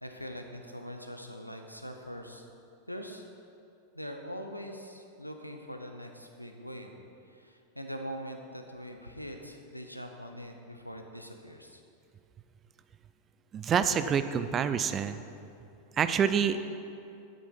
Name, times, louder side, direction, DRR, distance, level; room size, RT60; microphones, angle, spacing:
voice 1, 0.0-2.5 2.9-3.3 3.9-6.9 7.3-11.8, equal, 90° left, 4 dB, 0.8 m, -42 dB
voice 2, 13.5-15.2 16.0-16.7, right 7 dB, 25° right, 11 dB, 0.4 m, -27 dB
8.4 x 7.2 x 5.9 m, 2.6 s
figure-of-eight pair, 90°, 0 cm